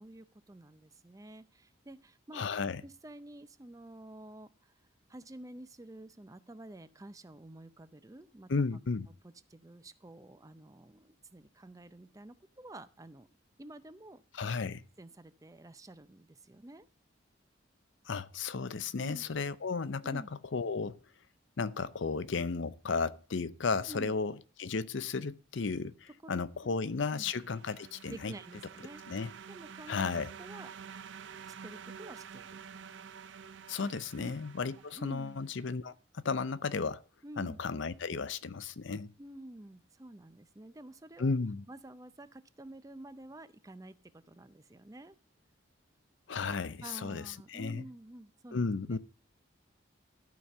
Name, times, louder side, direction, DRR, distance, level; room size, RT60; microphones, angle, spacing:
voice 1, 0.0-2.5 2.8-4.7 5.1-8.5 9.2-13.3 13.6-14.2 15.0-16.9 19.0-19.2 20.0-20.3 23.8-24.1 26.2-26.8 27.1-27.3 28.1-29.2 29.5-30.1 30.4-30.7 31.5-32.6 34.2-34.3 34.9-35.5 37.2-37.6 39.2-41.3 41.7-45.2 46.8-48.6 48.9-49.0, right 1 dB, 15° right, 0.5 m, -49 dB
voice 2, 2.3-2.8 8.5-9.1 14.3-14.8 18.1-20.2 20.5-21.0 21.6-28.3 29.1-29.3 29.9-30.3 33.7-37.0 37.4-39.1 41.2-41.6 46.3-47.8 48.5-49.0, left 4 dB, 70° left, 0.6 m, -34 dB
sound 1, 26.9-35.5, right 7 dB, 65° right, 0.5 m, -49 dB
12.5 x 5.1 x 6.6 m
head